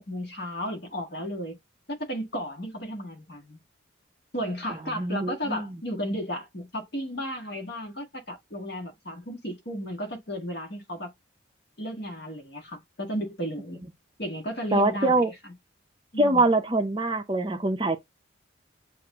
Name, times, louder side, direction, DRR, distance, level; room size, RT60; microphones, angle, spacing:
voice 1, 0.1-1.6 1.9-3.6 4.3-11.1 11.8-13.8 14.2-15.5 16.1-16.5, equal, 55° left, 1.6 m, -34 dB
voice 2, 5.0-5.7 14.7-15.3 16.2-18.0, right 2 dB, 25° right, 0.5 m, -23 dB
7.5 x 2.5 x 2.4 m
head